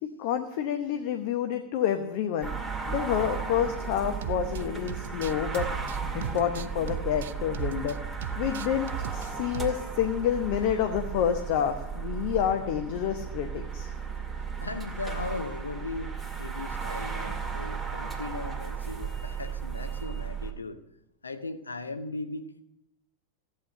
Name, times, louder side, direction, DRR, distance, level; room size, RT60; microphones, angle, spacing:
voice 1, 0.0-2.5 2.9-5.7 6.1-8.0 8.4-13.9, left 9 dB, 45° left, 7 dB, 0.9 m, -28 dB
sound 1, 2.4-20.5, right 5 dB, ahead, 2.1 m, -35 dB
sound 2, 4.2-4.6 4.9-7.9 8.2-9.3 9.5-9.8, right 11 dB, 60° right, 0.5 m, -37 dB
voice 2, 14.6-20.8 21.2-22.6, left 3 dB, 75° left, 9 dB, 1.0 m, -38 dB
14.5 x 8.6 x 6.5 m, 0.86 s
figure-of-eight pair, 90°, 0 cm